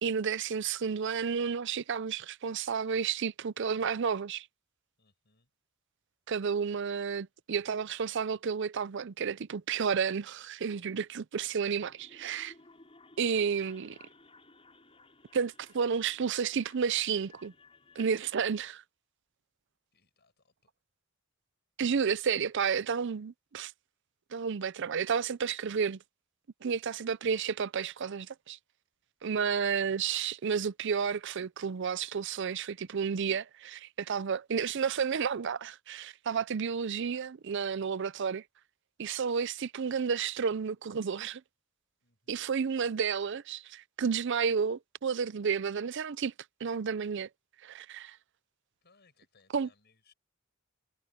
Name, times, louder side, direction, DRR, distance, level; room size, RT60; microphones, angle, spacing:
voice 1, 0.0-4.5 6.3-12.5 13.2-14.0 15.3-17.5 18.0-18.8 21.8-23.7 24.3-26.0 26.6-28.6 29.2-38.4 39.0-41.4 42.3-46.3 46.6-47.3 47.6-48.2 49.5-49.7, right 6 dB, 60° right, 0.5 m, -31 dB
voice 2, 5.0-5.5 19.9-20.7 42.0-42.5 48.8-50.1, left 4 dB, 55° left, 7.3 m, -67 dB
sound 1, 11.7-18.7, left 3 dB, 30° left, 5.3 m, -59 dB
head